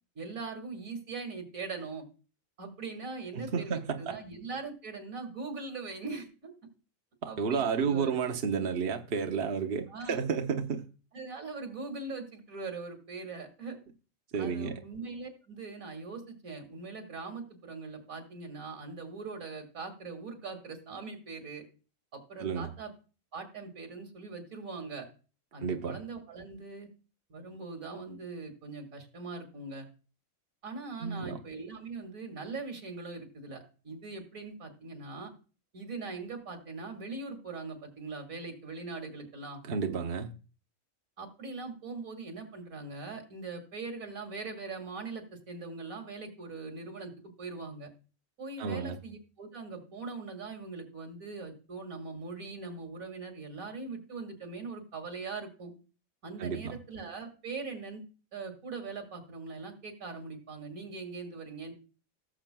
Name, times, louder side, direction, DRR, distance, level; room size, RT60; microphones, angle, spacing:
voice 1, 0.2-2.0 2.6-6.5 7.3-8.2 9.9-10.2 11.1-13.8 14.3-21.6 22.1-22.9 23.3-25.1 25.5-26.9 27.3-29.9 30.6-35.3 35.7-39.6 41.2-47.9 48.4-55.7 56.2-58.0 58.3-61.7, right 4 dB, 80° right, 2.5 m, -41 dB
voice 2, 3.3-4.2 7.2-10.9 14.3-14.8 22.4-22.7 25.6-26.0 31.0-31.4 39.6-40.3 48.6-49.0 56.4-56.8, right 6 dB, 50° right, 1.0 m, -31 dB
17.5 x 7.4 x 2.2 m
omnidirectional pair, 1.4 m